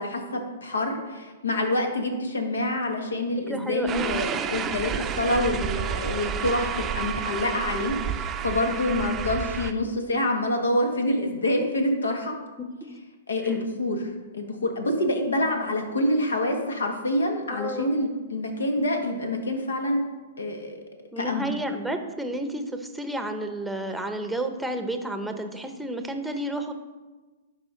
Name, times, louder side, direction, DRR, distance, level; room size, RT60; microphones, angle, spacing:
voice 1, 0.0-12.3 13.3-20.0 20.4-20.8 21.2-21.5, left 1 dB, 85° left, 4 dB, 1.5 m, -27 dB
voice 2, 3.5-4.2 8.8-9.0 12.6-12.7 13.4-13.6 17.5-17.9 21.1-26.7, right 1 dB, ahead, 6 dB, 0.8 m, -31 dB
sound 1, 3.9-9.7, right 8 dB, 25° right, 0.5 m, -30 dB
11.5 x 5.0 x 3.8 m, 1.2 s
hypercardioid pair, 120°, 0 cm